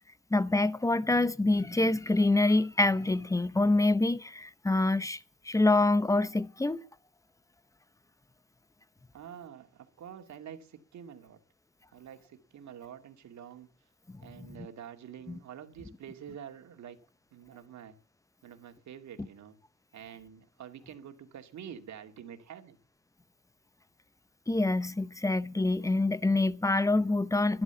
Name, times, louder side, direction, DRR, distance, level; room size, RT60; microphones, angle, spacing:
voice 1, 0.3-5.2 5.5-6.8 14.4-14.5 24.5-27.6, left 2 dB, 10° left, 0.7 m, -26 dB
voice 2, 9.1-11.4 11.9-13.7 14.2-17.0 17.3-18.0 18.4-19.6 19.9-22.8, right 9 dB, 65° right, 2.3 m, -47 dB
12.5 x 11.0 x 7.0 m
cardioid pair, 90°, 30 cm